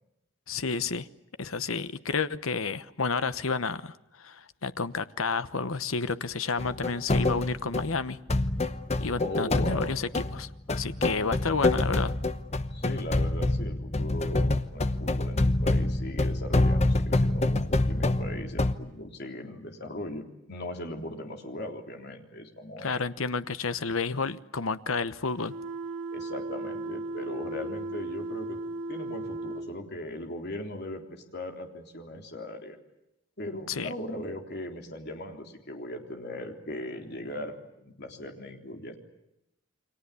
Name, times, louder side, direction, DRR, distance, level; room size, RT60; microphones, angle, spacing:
voice 1, 0.5-1.1 1.4-8.2 9.0-12.1 22.8-25.5 33.7-33.9, left 4 dB, 75° left, 13 dB, 1.1 m, -31 dB
sound 1, 6.6-8.0 8.3-18.7, left 2 dB, 30° left, 1.0 m, -26 dB
voice 2, 9.2-10.0 12.7-23.0 26.1-28.6 28.9-32.8 33.4-39.0, left 1 dB, 50° left, 3 dB, 3.6 m, -39 dB
sound 2, 25.5-29.7, right 2 dB, 60° right, 2.5 m, -36 dB
29.5 x 24.0 x 8.4 m, 0.88 s
head